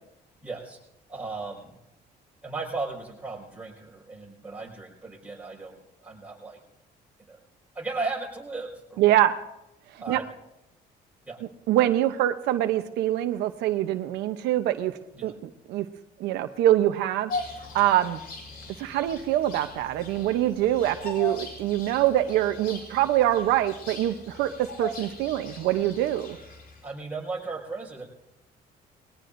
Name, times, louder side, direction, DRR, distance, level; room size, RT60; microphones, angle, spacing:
voice 1, 0.4-0.8 1.1-1.7 2.4-6.6 7.3-7.4 7.7-9.1 10.0-10.2 11.3-11.4 15.1-15.3 26.8-28.0, right 3 dB, 10° right, -3 dB, 5.1 m, -36 dB
voice 2, 9.0-9.3 10.1-10.2 11.7-14.9 15.2-15.9 16.2-17.3 17.7-18.2 18.8-26.4, right 13 dB, 85° right, 8 dB, 0.8 m, -24 dB
Bird vocalization bird call bird song, 17.3-26.9, left 2 dB, 60° left, 4.4 m, -40 dB
21.0 x 18.0 x 2.6 m, 0.85 s
cardioid pair, 110°, 17 cm